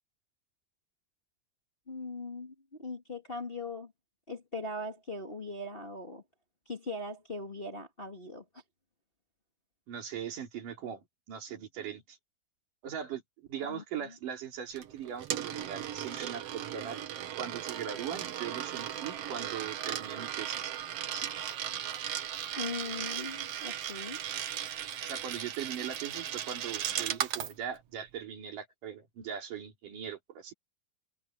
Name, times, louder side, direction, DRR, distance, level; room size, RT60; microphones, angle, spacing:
voice 1, 1.9-3.9 4.3-6.2 6.7-8.6 13.7-14.1 22.6-24.2, left 2 dB, 20° left, 1.7 m, -40 dB
voice 2, 9.9-12.2 12.8-17.0 17.4-20.7 21.1-21.3 25.0-30.5, right 8 dB, 80° right, 4.5 m, -40 dB
Coin (dropping), 14.8-27.5, right 10 dB, 60° right, 1.8 m, -37 dB
omnidirectional pair, 3.7 m